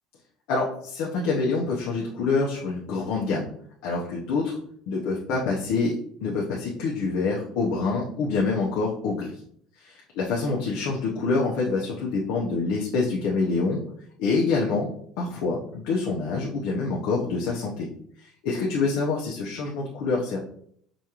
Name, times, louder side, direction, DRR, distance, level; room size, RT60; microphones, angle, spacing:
voice 1, 0.5-3.5 3.8-4.6 4.9-5.9 6.2-9.3 9.8-13.8 14.2-14.9 15.2-17.9 18.2-20.4, left 4 dB, 65° left, -3 dB, 0.6 m, -26 dB
5.0 x 2.4 x 2.9 m, 0.65 s
cardioid pair, 160°, 0 cm